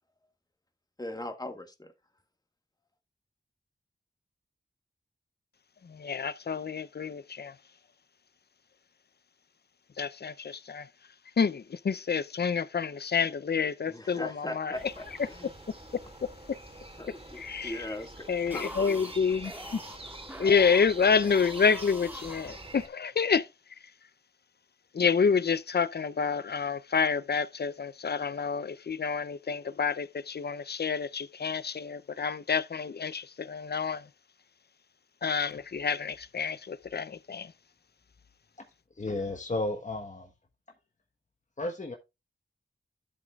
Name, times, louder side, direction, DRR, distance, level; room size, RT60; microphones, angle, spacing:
voice 1, 1.0-1.9 13.9-15.5 17.0-19.1, left 1 dB, 20° left, 1.8 m, -40 dB
voice 2, 5.8-7.5 10.0-10.9 11.4-14.8 16.2-16.6 17.4-17.8 18.3-19.8 20.4-23.5 24.9-34.1 35.2-37.5, left 6 dB, 55° left, 0.6 m, -28 dB
sound 1, 14.7-22.9, right 2 dB, 30° right, 2.3 m, -46 dB
sound 2, 18.4-23.1, equal, 10° right, 1.7 m, -45 dB
voice 3, 39.0-40.3 41.6-42.0, left 2 dB, 40° left, 1.3 m, -33 dB
12.0 x 7.4 x 2.4 m
cardioid pair, 45°, 20 cm